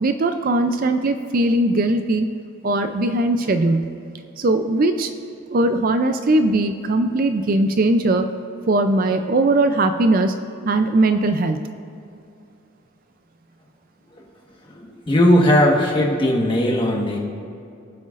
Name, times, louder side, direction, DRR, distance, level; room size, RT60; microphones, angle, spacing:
voice 1, 0.0-2.3 2.6-3.9 4.4-5.2 5.5-8.3 8.7-10.3 10.6-11.6, right 2 dB, 40° right, 8 dB, 0.4 m, -19 dB
voice 2, 14.8-17.2, equal, 25° left, -1 dB, 1.4 m, -18 dB
22.5 x 7.9 x 2.5 m, 2.5 s
head